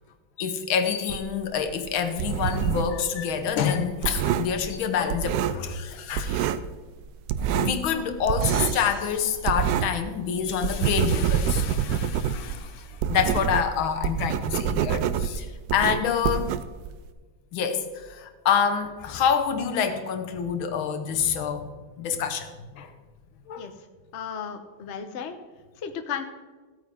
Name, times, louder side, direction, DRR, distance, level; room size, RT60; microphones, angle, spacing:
voice 1, 0.4-6.5 7.4-16.6 17.5-21.7 22.0-22.9 23.5-23.7, left 7 dB, 85° left, 7 dB, 1.8 m, -27 dB
sound 1, 1.1-3.0 3.3-5.9 6.1-6.7 7.0-10.1 10.4-17.1, right 9 dB, 75° right, 1.1 m, -27 dB
sound 2, 8.4-10.4, right 4 dB, 50° right, 1.5 m, -42 dB
voice 2, 24.1-25.4 25.8-26.2, left 7 dB, 50° left, 7 dB, 0.9 m, -34 dB
15.5 x 8.8 x 3.7 m, 1.4 s
omnidirectional pair, 2.2 m